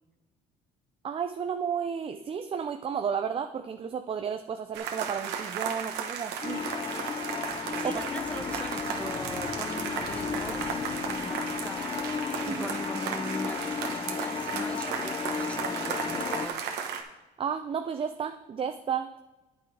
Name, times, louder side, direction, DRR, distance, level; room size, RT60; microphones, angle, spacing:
voice 1, 1.0-6.6 7.8-8.0 12.4-12.7 17.4-19.2, right 7 dB, 35° right, 7 dB, 0.5 m, -32 dB
sound 1, 4.7-17.0, right 7 dB, 85° right, 1.2 m, -35 dB
sound 2, 6.4-16.5, left 6 dB, 30° left, 0.5 m, -34 dB
sound 3, 7.3-13.9, left 4 dB, 90° left, 1.3 m, -47 dB
voice 2, 7.8-10.8 11.0-16.6, left 1 dB, 5° left, 9 dB, 0.8 m, -41 dB
9.3 x 9.2 x 3.4 m, 1.1 s
cardioid pair, 110°, 17 cm